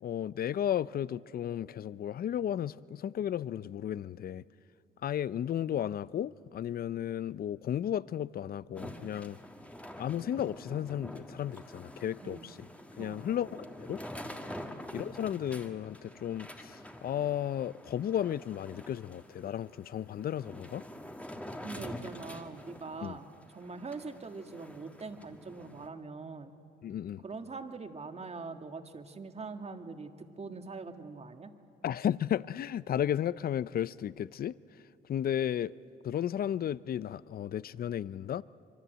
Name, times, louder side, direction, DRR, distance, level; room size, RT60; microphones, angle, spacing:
voice 1, 0.0-4.4 5.0-9.4 10.0-12.6 13.0-13.5 13.8-14.0 14.9-20.8 23.0-23.2 26.8-27.2 31.8-34.5 35.1-35.7 36.0-38.4, left 10 dB, 50° left, 0.5 m, -34 dB
sound 1, 8.8-25.9, left 1 dB, 5° left, 1.7 m, -47 dB
voice 2, 21.6-26.5 27.2-31.5, right 4 dB, 30° right, 1.7 m, -43 dB
25.0 x 24.0 x 8.1 m
cardioid pair, 90°, 20 cm